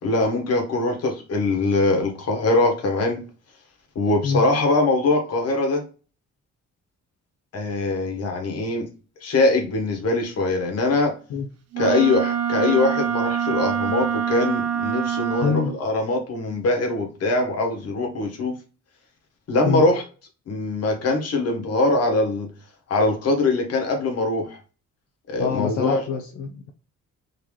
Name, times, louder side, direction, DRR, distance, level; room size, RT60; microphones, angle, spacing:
voice 1, 0.0-3.2 3.9-5.8 7.5-8.9 9.2-11.1 11.8-18.6 19.5-20.0 20.5-22.5 22.9-24.6 25.3-26.0, left 2 dB, 55° left, 1.4 m, -22 dB
Wind instrument woodwind instrument, 11.7-15.8, right 8 dB, 60° right, 0.6 m, -25 dB
voice 2, 15.4-15.8 19.6-19.8 25.4-26.7, left 6 dB, 75° left, 0.6 m, -25 dB
3.9 x 2.9 x 3.1 m
cardioid pair, 135°, 30 cm